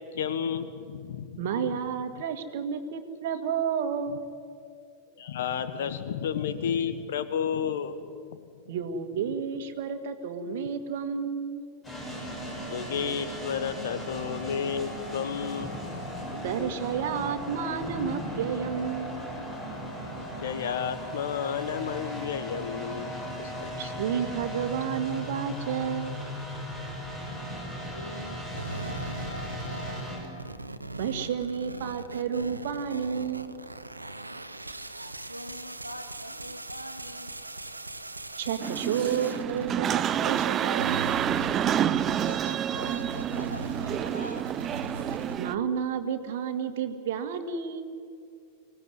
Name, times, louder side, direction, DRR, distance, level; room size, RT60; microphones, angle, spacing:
voice 1, 0.0-1.8 4.1-4.2 5.2-8.4 12.7-15.8 20.4-23.1 23.4-23.9, left 7 dB, 60° left, 11 dB, 1.3 m, -32 dB
voice 2, 1.4-4.3 8.7-11.7 16.4-19.1 23.8-26.1 31.0-33.6 38.4-41.1 45.4-47.8, right 7 dB, 55° right, 8 dB, 1.8 m, -31 dB
sound 1, 11.8-30.2, equal, 20° left, 7.6 m, -37 dB
voice 3, 27.8-30.0 35.0-37.3 42.2-44.5, equal, 90° left, 6 dB, 1.7 m, -44 dB
sound 2, 28.5-40.5 40.7-45.3, right 2 dB, 85° right, 1.1 m, -39 dB
sound 3, 38.6-45.5, right 10 dB, 30° right, 0.5 m, -28 dB
24.5 x 18.0 x 9.9 m, 2.3 s
figure-of-eight pair, 90°, 0 cm